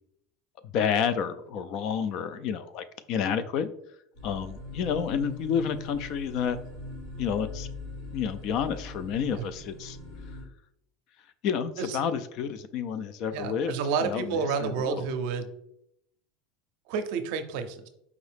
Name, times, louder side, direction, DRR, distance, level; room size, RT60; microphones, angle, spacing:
voice 1, 0.7-3.7 4.2-6.6 7.2-7.7 8.1-10.0 11.4-13.7 14.0-14.9, left 7 dB, 55° left, 12 dB, 0.3 m, -30 dB
sound 1, 4.1-10.4, left 3 dB, 90° left, 1.7 m, -41 dB
voice 2, 13.3-15.5 16.9-17.9, right 5 dB, 70° right, 8 dB, 0.5 m, -30 dB
4.8 x 2.6 x 3.3 m, 0.77 s
supercardioid pair, 130°, 0 cm